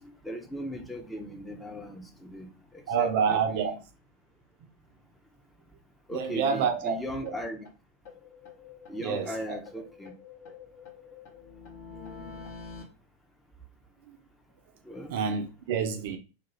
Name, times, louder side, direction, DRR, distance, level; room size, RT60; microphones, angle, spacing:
voice 1, 0.0-3.8 6.1-7.7 8.9-10.1 11.9-12.5 14.8-15.2, equal, 5° left, 0.5 m, -38 dB
voice 2, 2.9-3.7 6.1-7.0 7.2-7.4 9.0-9.6 14.0-14.2 14.7-14.8 15.1-16.2, right 6 dB, 50° right, 0.4 m, -28 dB
sound 1, 6.4-6.5 6.8-6.9 7.2-7.3 7.6-7.7 8.0-9.3 9.6-12.8, left 5 dB, 45° left, 0.9 m, -47 dB
2.3 x 2.3 x 3.0 m
figure-of-eight pair, 90°, 0 cm